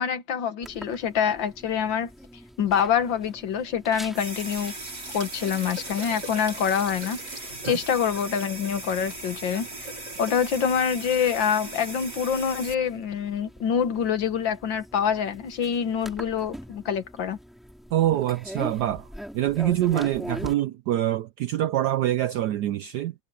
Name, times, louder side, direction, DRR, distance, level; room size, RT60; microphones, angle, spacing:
voice 1, 0.0-2.1 2.6-4.7 5.1-9.9 10.2-17.4, left 7 dB, 65° left, 2.0 m, -26 dB
sound 1, 0.6-20.5, equal, ahead, 5.3 m, -43 dB
sound 2, 4.1-12.8, right 2 dB, 55° right, 6.1 m, -38 dB
voice 2, 17.9-19.1 19.3-23.1, right 13 dB, 75° right, 0.9 m, -25 dB
omnidirectional pair, 2.2 m